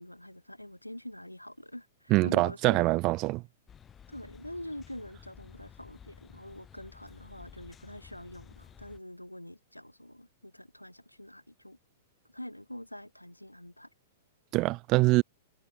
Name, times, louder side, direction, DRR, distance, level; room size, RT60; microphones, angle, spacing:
voice 1, 0.0-2.8 4.1-11.8 12.3-13.9, left 1 dB, 90° left, 1.7 m, -45 dB
voice 2, 2.1-3.4 14.5-15.2, right 21 dB, 35° right, 0.3 m, -24 dB
sound 1, 3.7-9.0, left 8 dB, 20° left, 4.7 m, -53 dB
figure-of-eight pair, 105°, 0 cm